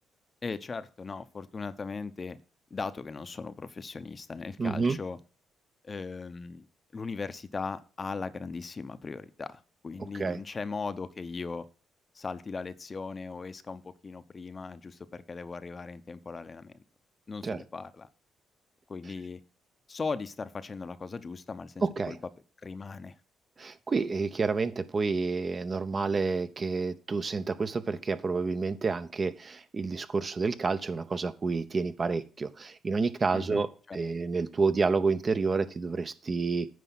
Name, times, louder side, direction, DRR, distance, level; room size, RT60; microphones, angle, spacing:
voice 1, 0.4-2.4 2.7-5.2 5.8-6.7 6.9-11.7 12.1-16.7 17.3-18.1 18.9-19.4 19.9-22.2 22.6-23.2 33.3-34.0, left 4 dB, 35° left, 13 dB, 0.7 m, -38 dB
voice 2, 4.6-5.0 10.2-10.4 17.4-17.6 21.8-22.2 23.6-36.7, right 4 dB, 35° right, 12 dB, 0.8 m, -29 dB
9.4 x 5.0 x 5.9 m, 0.38 s
cardioid pair, 90°, 0 cm